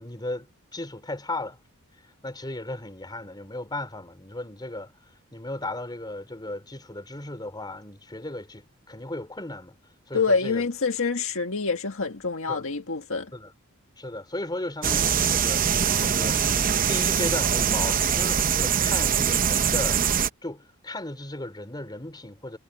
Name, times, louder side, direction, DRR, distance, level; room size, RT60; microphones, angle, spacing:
voice 1, 0.0-1.6 2.2-4.9 5.3-9.8 10.1-10.6 12.5-12.6 13.3-13.5 14.0-15.7 16.0-16.4 16.9-20.0 20.4-22.6, left 2 dB, 20° left, 4.4 m, -35 dB
voice 2, 10.1-13.3, left 4 dB, 65° left, 1.8 m, -26 dB
sound 1, 14.8-20.3, right 7 dB, 40° right, 0.7 m, -23 dB
head